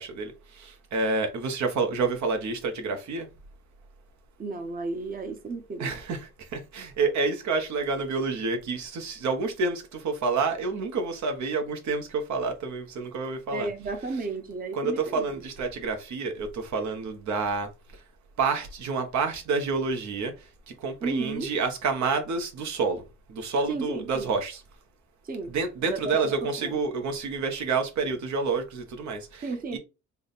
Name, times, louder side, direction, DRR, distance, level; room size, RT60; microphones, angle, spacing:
voice 1, 0.0-3.3 5.8-13.7 14.7-17.7 18.4-23.0 23.3-24.6 25.5-29.8, right 4 dB, 70° right, 1.0 m, -29 dB
voice 2, 4.4-5.9 13.5-15.2 21.0-21.5 23.7-24.3 25.2-25.5 25.8-26.7 29.4-29.8, right 3 dB, 30° right, 0.7 m, -33 dB
3.4 x 2.2 x 4.0 m
cardioid pair, 90°, 30 cm